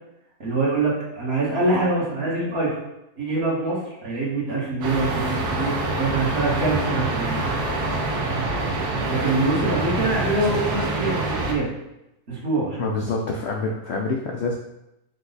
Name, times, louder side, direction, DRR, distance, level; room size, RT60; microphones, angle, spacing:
voice 1, 0.4-2.8 3.2-7.4 9.1-11.7 12.3-12.9, right 2 dB, 45° right, -5 dB, 1.3 m, -24 dB
sound 1, 4.8-11.5, right 2 dB, 85° right, 1.4 m, -25 dB
voice 2, 12.8-14.6, left 3 dB, 75° left, 0 dB, 0.6 m, -26 dB
5.3 x 2.2 x 3.9 m, 0.88 s
omnidirectional pair, 1.6 m